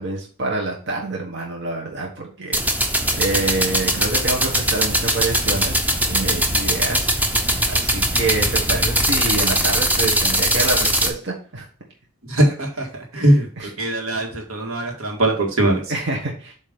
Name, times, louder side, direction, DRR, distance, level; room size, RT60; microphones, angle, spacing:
voice 1, 0.0-2.9 3.2-5.8 6.1-7.1 7.7-11.7 13.5-13.7 15.9-16.5, right 2 dB, 55° right, -2 dB, 1.4 m, -27 dB
sound 1, 2.5-11.1, right 1 dB, 10° right, 0.7 m, -20 dB
voice 2, 12.3-12.9 13.1-15.8, right 1 dB, 85° right, 1 dB, 2.0 m, -20 dB
7.4 x 3.2 x 5.2 m, 0.42 s
head